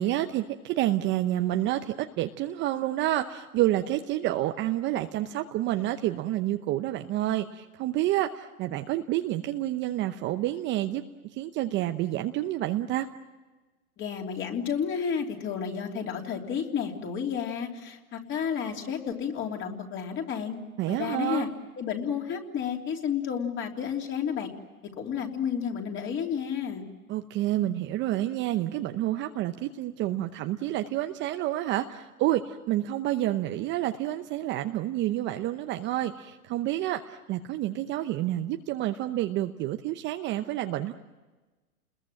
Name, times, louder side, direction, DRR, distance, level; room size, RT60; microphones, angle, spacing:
voice 1, 0.0-11.0 11.3-13.1 20.8-21.5 27.1-40.9, right 14 dB, 25° right, 7 dB, 0.8 m, -29 dB
voice 2, 14.0-20.6 20.9-21.5 21.8-24.5 25.0-26.8, left 7 dB, 25° left, 2 dB, 3.3 m, -31 dB
30.0 x 21.0 x 7.6 m, 1.2 s
hypercardioid pair, 125°, 44 cm